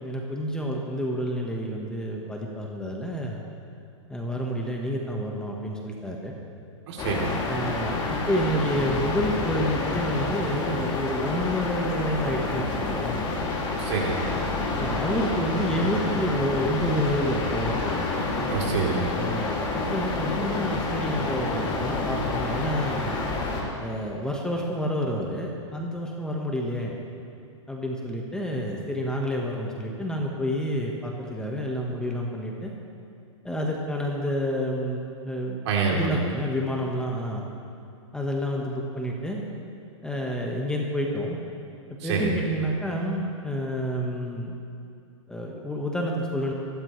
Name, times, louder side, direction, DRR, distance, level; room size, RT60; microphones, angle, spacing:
voice 1, 0.0-3.4 4.1-6.3 7.5-13.2 14.8-17.9 19.1-23.2 23.8-26.9 27.7-32.7 33.4-35.6 35.9-37.4 38.1-39.4 40.0-41.4 42.0-44.5 45.3-46.5, equal, 5° left, -1 dB, 1.4 m, -29 dB
voice 2, 6.9-7.4 13.8-14.3 18.5-19.1 35.6-36.3 42.0-42.4, right 4 dB, 60° right, -2 dB, 3.4 m, -27 dB
sound 1, 7.0-23.6, left 3 dB, 25° left, 2.7 m, -28 dB
26.0 x 12.5 x 3.3 m, 2.5 s
hypercardioid pair, 125°, 17 cm